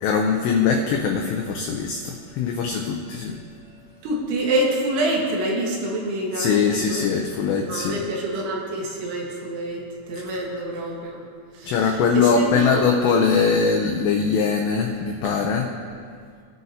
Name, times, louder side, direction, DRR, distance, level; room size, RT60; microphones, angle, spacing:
voice 1, 0.0-3.3 6.3-8.0 11.6-15.7, left 5 dB, 90° left, 2 dB, 2.4 m, -21 dB
voice 2, 4.0-7.0 7.7-11.2 11.6-12.8 15.2-15.3, right 1 dB, 70° right, -2 dB, 3.7 m, -27 dB
20.5 x 9.5 x 2.8 m, 2.1 s
omnidirectional pair, 5.9 m